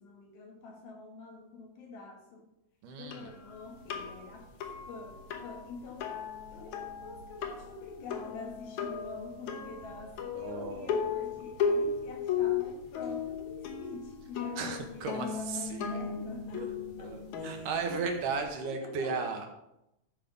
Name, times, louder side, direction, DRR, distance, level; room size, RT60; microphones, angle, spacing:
voice 1, 0.0-2.4 3.0-4.5 4.9-6.1 6.5-16.7 17.0-18.1 18.6-19.5, left 4 dB, 85° left, 0 dB, 3.9 m, -46 dB
voice 2, 2.8-3.3 10.4-11.0 14.6-16.0 16.5-16.7 17.0-19.5, right 5 dB, 70° right, 4 dB, 2.2 m, -35 dB
sound 1, 3.1-18.5, left 6 dB, 65° left, 2.2 m, -36 dB
13.0 x 5.0 x 5.2 m, 0.86 s
omnidirectional pair, 4.1 m